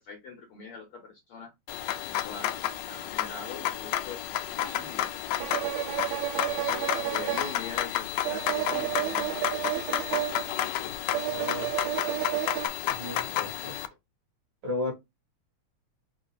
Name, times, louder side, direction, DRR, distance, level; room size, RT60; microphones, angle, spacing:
voice 1, 0.0-1.5 2.1-4.2 4.5-5.2 6.6-9.4, left 5 dB, 65° left, 1.4 m, -43 dB
sound 1, 1.7-13.9, left 13 dB, 85° left, 1.4 m, -31 dB
sound 2, 4.6-4.7 5.4-12.7, right 15 dB, 85° right, 1.9 m, -32 dB
voice 2, 11.2-11.7 12.8-13.8 14.6-14.9, left 2 dB, 45° right, 2.3 m, -35 dB
4.7 x 2.8 x 4.0 m
omnidirectional pair, 3.4 m